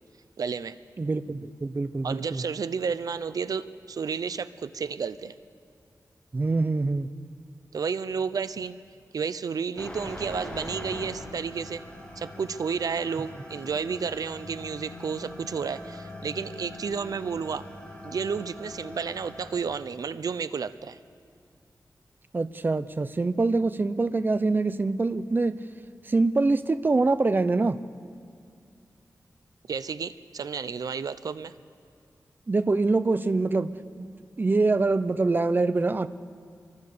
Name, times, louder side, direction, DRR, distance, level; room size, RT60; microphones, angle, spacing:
voice 1, 0.4-0.8 2.0-5.3 7.7-8.8 9.1-11.8 12.2-17.7 18.0-21.0 29.7-31.5, right 6 dB, 80° right, 14 dB, 0.7 m, -31 dB
voice 2, 1.0-2.4 6.3-7.1 22.3-25.6 26.1-27.8 32.5-33.7 34.0-34.1 34.4-36.1, right 3 dB, 30° right, 13 dB, 0.7 m, -24 dB
sound 1, 9.8-19.6, left 1 dB, 20° left, 6.6 m, -42 dB
27.5 x 23.5 x 6.8 m, 2.3 s
wide cardioid pair, 105°, 6 cm